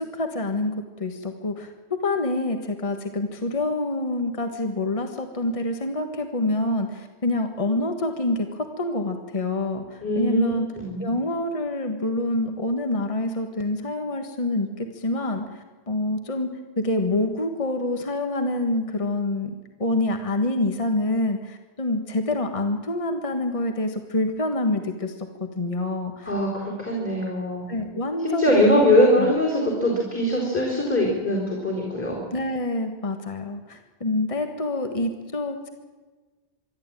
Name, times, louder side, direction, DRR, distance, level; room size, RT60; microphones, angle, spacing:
voice 1, 0.0-1.7 2.0-10.7 11.0-16.5 16.8-19.5 19.8-26.3 27.7-28.9 29.2-29.3 32.3-35.7, left 2 dB, 30° left, 6 dB, 1.6 m, -26 dB
voice 2, 10.0-10.5 10.8-11.0 26.2-27.6 28.2-32.2, left 1 dB, 10° left, -3 dB, 4.4 m, -22 dB
25.5 x 11.5 x 9.0 m, 1.3 s
omnidirectional pair, 1.2 m